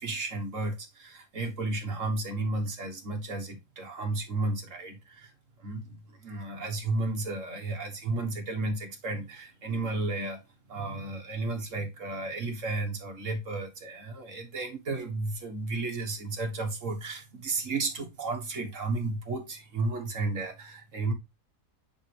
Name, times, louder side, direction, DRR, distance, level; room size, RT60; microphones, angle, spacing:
voice 1, 0.0-5.3 5.6-10.4 10.7-21.1, right 2 dB, 50° right, 1.8 m, -33 dB
9.7 x 4.1 x 3.4 m
omnidirectional pair, 1.7 m